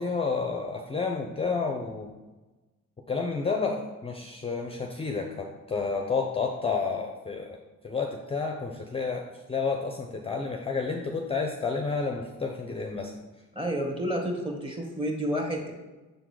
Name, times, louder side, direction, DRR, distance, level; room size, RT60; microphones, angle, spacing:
voice 1, 0.0-2.1 3.1-13.1, left 4 dB, 20° left, 3 dB, 0.6 m, -30 dB
voice 2, 13.5-15.7, equal, 15° right, 1 dB, 1.5 m, -30 dB
6.8 x 3.9 x 4.7 m, 1.2 s
cardioid pair, 90°, 30 cm